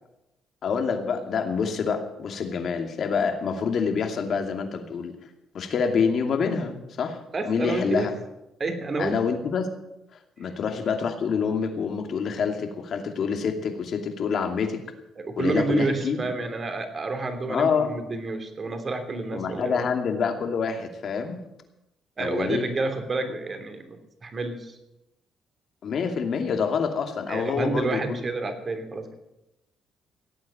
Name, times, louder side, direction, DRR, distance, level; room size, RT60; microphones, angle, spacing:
voice 1, 0.6-5.2 5.5-7.2 7.4-8.2 9.0-9.7 10.4-14.8 15.4-16.3 17.5-17.9 19.3-21.4 22.2-22.7 25.8-28.2, left 6 dB, 60° left, 5 dB, 2.5 m, -27 dB
voice 2, 7.3-8.1 8.6-9.2 15.2-19.9 22.2-24.8 27.3-29.1, right 3 dB, 40° right, 7 dB, 3.1 m, -29 dB
17.5 x 8.6 x 8.7 m, 0.91 s
cardioid pair, 90°, 0 cm